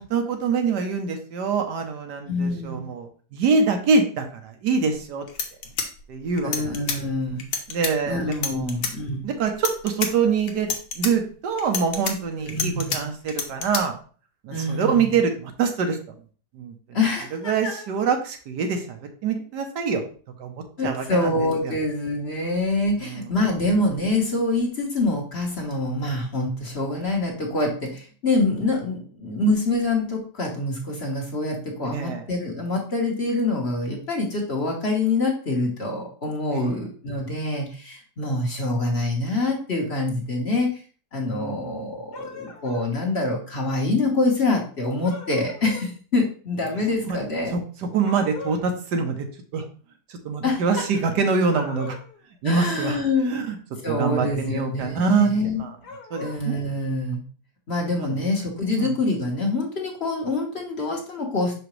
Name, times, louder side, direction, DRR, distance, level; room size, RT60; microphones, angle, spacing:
voice 1, 0.0-5.2 6.1-6.8 7.7-8.8 9.2-10.7 11.0-13.9 14.4-16.0 16.5-17.0 17.4-20.0 20.4-21.7 23.0-23.3 31.9-32.2 36.5-36.8 41.3-41.8 47.0-47.2 47.5-47.6 47.9-49.3 49.5-49.6 50.1-52.0 52.4-53.0 53.3-53.6 53.9-55.3 55.6-55.7 56.1-56.6 58.0-58.2 58.8-58.9, right 5 dB, 80° right, 5 dB, 1.5 m, -25 dB
voice 2, 2.3-2.9 6.4-7.5 8.0-9.2 12.4-13.0 14.5-15.1 16.9-17.8 20.8-40.8 41.1-47.6 50.4-50.6 52.4-53.3 53.8-55.6 56.2-57.2 57.7-61.6, left 2 dB, 40° left, -1 dB, 1.4 m, -25 dB
sound 1, 4.9-5.0 5.3-7.0 7.4-7.9 8.3-8.9 9.5-10.1 10.5-11.1 11.6-13.0 13.3-13.8, left 6 dB, 85° left, 1.5 m, -28 dB
sound 2, 42.1-42.9 45.0-45.9 48.0-48.7 51.4-52.2 55.8-56.4, left 4 dB, 70° left, 1.6 m, -38 dB
6.1 x 5.0 x 3.1 m, 0.41 s
omnidirectional pair, 1.8 m